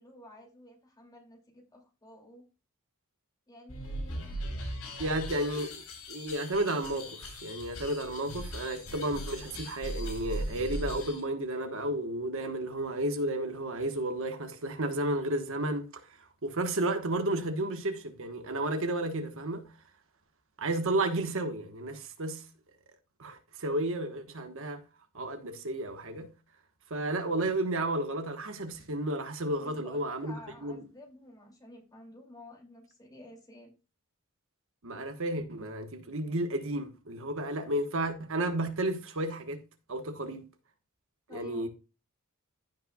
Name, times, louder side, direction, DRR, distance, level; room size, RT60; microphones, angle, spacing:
voice 1, 0.0-2.5 3.5-4.4 5.0-5.1 29.6-33.7 41.3-41.7, left 1 dB, 20° left, 2.7 m, -51 dB
sound 1, 3.7-11.2, equal, 80° left, 5.2 m, -39 dB
voice 2, 5.0-16.1 16.4-19.7 20.6-22.4 23.2-24.8 25.1-26.3 26.9-30.3 30.6-30.8 34.8-39.6 39.9-40.4 41.3-41.7, right 1 dB, 65° right, 1.3 m, -32 dB
15.5 x 5.5 x 2.3 m
head